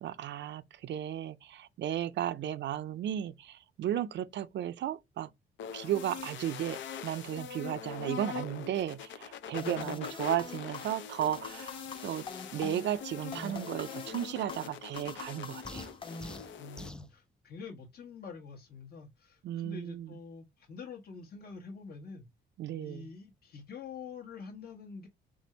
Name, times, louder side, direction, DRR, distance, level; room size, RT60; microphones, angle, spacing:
voice 1, 0.0-5.3 5.7-15.9 19.4-20.2 22.6-23.1, right 11 dB, 65° right, 0.5 m, -35 dB
sound 1, 5.6-16.9, left 7 dB, 70° left, 0.6 m, -43 dB
sound 2, 9.6-17.0, left 4 dB, 25° left, 0.9 m, -44 dB
sound 3, 15.6-17.1, left 1 dB, 5° left, 0.3 m, -46 dB
voice 2, 16.6-22.3 22.8-25.1, left 5 dB, 50° left, 1.1 m, -46 dB
3.7 x 2.6 x 4.3 m
cardioid pair, 90°, 20 cm